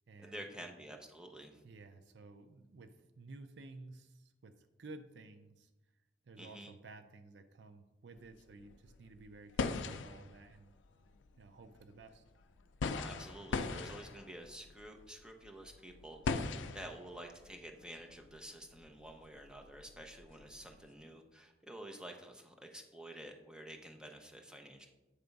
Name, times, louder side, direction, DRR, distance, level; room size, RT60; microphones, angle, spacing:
voice 1, 0.2-1.6 6.4-6.7 13.0-24.9, right 1 dB, 5° right, 3 dB, 0.7 m, -50 dB
voice 2, 1.6-5.7 6.2-10.8 11.4-12.2, right 3 dB, 70° right, 8 dB, 0.5 m, -54 dB
sound 1, 8.2-8.3 8.6-20.9, left 4 dB, 90° left, 0.4 m, -41 dB
8.0 x 3.4 x 5.2 m, 1.0 s
head